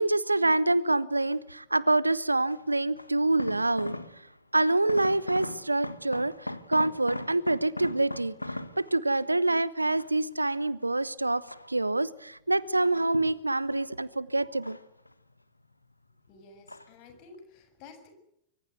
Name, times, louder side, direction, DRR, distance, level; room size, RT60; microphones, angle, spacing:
voice 1, 0.0-3.9 4.5-14.8, right 2 dB, 85° right, 21 dB, 0.9 m, -26 dB
sound 1, 1.2-1.6 2.5-4.4 4.7-9.5 10.0-10.8 11.3-12.1 12.6-13.9 14.2-15.4 15.6-16.3 16.7-17.0 17.3-17.4, left 1 dB, 85° left, 1.4 m, -40 dB
voice 2, 16.3-18.1, left 4 dB, 45° left, 7 dB, 7.1 m, -51 dB
25.0 x 24.0 x 8.0 m, 0.80 s
figure-of-eight pair, 90°, 0 cm